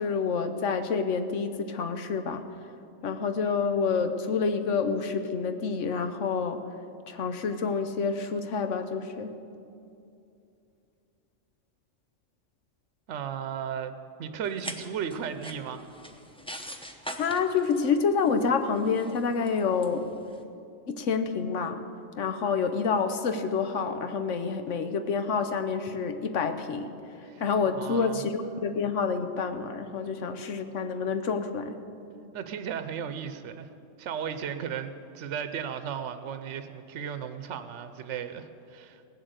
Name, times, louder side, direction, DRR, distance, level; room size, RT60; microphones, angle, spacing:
voice 1, 0.0-2.5 3.0-6.6 7.1-9.3 17.1-20.1 20.9-21.8 22.2-26.9 27.4-31.8, left 5 dB, 80° left, 8 dB, 1.2 m, -28 dB
voice 2, 13.1-13.9 14.2-15.8 27.3-27.4 27.7-28.2 32.3-33.7 34.0-39.0, right 8 dB, 75° right, 9 dB, 1.0 m, -35 dB
sound 1, 14.4-20.4, equal, 5° left, 0.6 m, -43 dB
17.5 x 7.8 x 8.0 m, 2.6 s
omnidirectional pair, 1.3 m